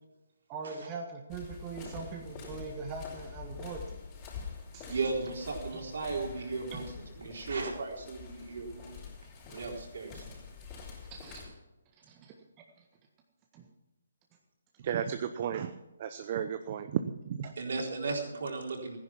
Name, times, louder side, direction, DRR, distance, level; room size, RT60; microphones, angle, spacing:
voice 1, 0.5-4.0 4.7-5.0 6.7-6.8 11.1-11.5 12.0-12.3 13.5-13.7, right 4 dB, 25° right, 1 dB, 1.6 m, -41 dB
sound 1, 1.3-11.5, left 5 dB, 25° left, 5.3 m, -46 dB
voice 2, 4.9-6.8 7.2-9.0 9.5-10.2 17.6-19.0, right 3 dB, 60° right, 0 dB, 4.0 m, -35 dB
voice 3, 14.8-17.5, right 8 dB, 40° right, 9 dB, 0.8 m, -34 dB
14.5 x 10.5 x 6.0 m, 1.0 s
figure-of-eight pair, 140°, 0 cm